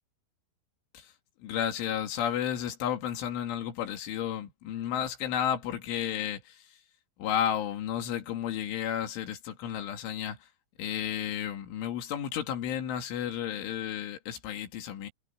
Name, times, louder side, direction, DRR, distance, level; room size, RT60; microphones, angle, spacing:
voice 1, 1.4-6.7 7.2-10.4 10.8-15.1, left 10 dB, 90° left, 4.8 m, -32 dB
omnidirectional pair, 5.4 m